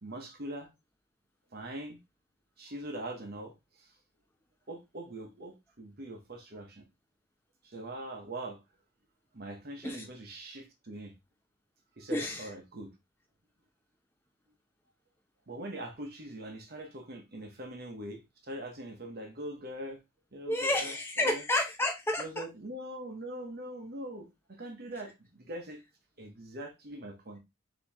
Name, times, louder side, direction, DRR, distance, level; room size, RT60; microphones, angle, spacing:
voice 1, 0.0-0.7 1.5-2.0 2.6-3.9 4.7-6.9 7.6-8.6 9.3-11.1 12.0-12.9 15.5-20.0 20.3-21.4 22.2-25.8 26.2-27.4, right 1 dB, 45° right, 0.9 m, -42 dB
voice 2, 12.1-12.5 20.5-22.4, left 1 dB, 10° left, 0.6 m, -30 dB
4.5 x 2.9 x 3.4 m
head